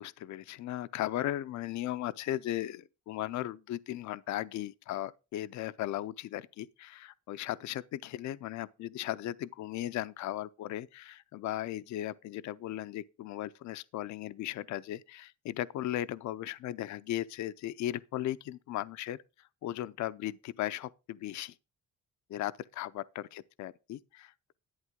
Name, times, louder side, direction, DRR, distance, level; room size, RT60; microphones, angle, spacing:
voice 1, 0.0-21.5 22.3-24.5, left 13 dB, 70° left, 0.5 m, -37 dB
11.0 x 9.0 x 3.6 m
cardioid pair, 90°, 30 cm